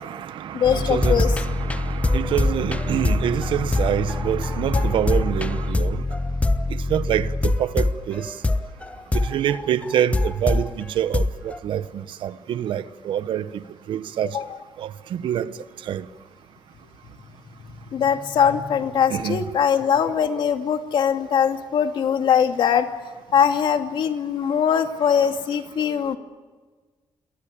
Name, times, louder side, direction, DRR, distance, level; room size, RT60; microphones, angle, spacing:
voice 1, 0.0-6.0 6.9-8.3 9.1-13.5 13.9-14.4 14.8-15.5 15.9-16.0 19.1-19.4, right 10 dB, 90° right, 1.1 m, -26 dB
voice 2, 0.5-1.3 14.3-14.4 17.9-22.9 23.3-26.2, left 8 dB, 75° left, 2.5 m, -21 dB
sound 1, 0.6-10.7 11.1-11.6, left 2 dB, 15° left, 1.0 m, -23 dB
28.5 x 22.5 x 8.7 m
cardioid pair, 125°, 8 cm